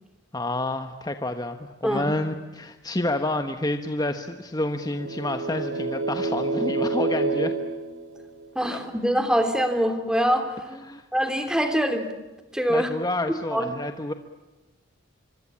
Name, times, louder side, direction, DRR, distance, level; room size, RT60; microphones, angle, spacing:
voice 1, 0.3-7.5 8.7-8.8 10.7-11.1 12.7-14.1, left 1 dB, 20° left, 7 dB, 1.2 m, -29 dB
voice 2, 1.8-2.1 8.5-10.7 11.1-12.1 12.5-12.9 13.3-13.7, equal, 5° right, 7 dB, 3.2 m, -24 dB
sound 1, 4.8-8.7, right 3 dB, 85° right, 4.7 m, -28 dB
25.5 x 25.0 x 8.7 m, 1.1 s
head